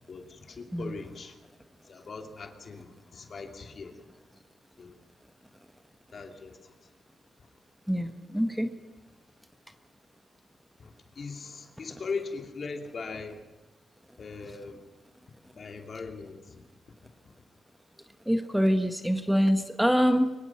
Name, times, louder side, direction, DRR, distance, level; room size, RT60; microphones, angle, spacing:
voice 1, 0.1-1.4 1.8-4.0 4.8-5.0 6.1-6.9 7.4-7.5 10.8-13.4 14.2-14.8 15.5-16.6 17.2-17.3, left 4 dB, 55° left, 4 dB, 2.8 m, -40 dB
voice 2, 7.9-8.7 18.2-20.3, equal, 5° right, 7 dB, 1.5 m, -25 dB
24.5 x 22.0 x 6.0 m, 1.2 s
cardioid pair, 75°, 0 cm